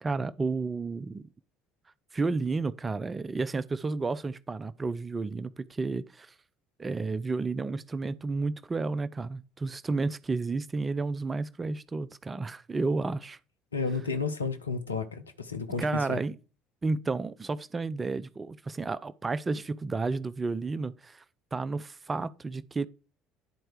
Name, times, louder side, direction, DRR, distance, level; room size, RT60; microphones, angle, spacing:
voice 1, 0.0-1.2 2.1-6.3 6.8-13.4 15.8-16.4 16.8-21.2 21.5-22.9, right 3 dB, 25° right, 0.5 m, -31 dB
voice 2, 13.7-16.2, left 4 dB, 85° left, 0.7 m, -32 dB
10.5 x 4.4 x 4.7 m
figure-of-eight pair, 55°, 0 cm